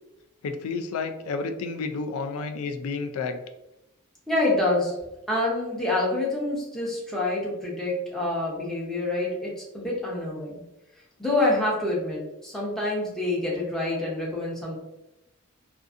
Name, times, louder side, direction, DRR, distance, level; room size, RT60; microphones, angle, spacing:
voice 1, 0.4-3.4, left 4 dB, 90° left, 7 dB, 0.3 m, -31 dB
voice 2, 4.3-4.9 5.3-10.6 11.2-14.8, left 2 dB, ahead, -5 dB, 0.5 m, -27 dB
2.5 x 2.5 x 2.4 m, 0.90 s
head